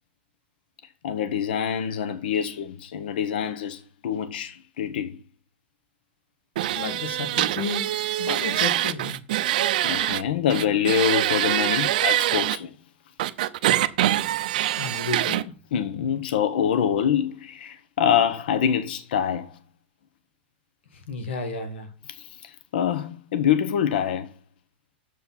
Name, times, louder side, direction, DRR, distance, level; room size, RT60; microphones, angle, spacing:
voice 1, 1.0-5.2 9.8-12.7 15.7-19.5 22.1-24.3, left 8 dB, 55° left, 0.8 m, -25 dB
sound 1, 6.6-10.2 10.5-12.6 13.2-15.4, right 13 dB, 45° right, 0.6 m, -24 dB
voice 2, 6.7-9.2 14.7-15.5 20.9-21.9, left 4 dB, 85° left, 1.9 m, -32 dB
6.9 x 6.8 x 5.6 m
supercardioid pair, 180°, 6 cm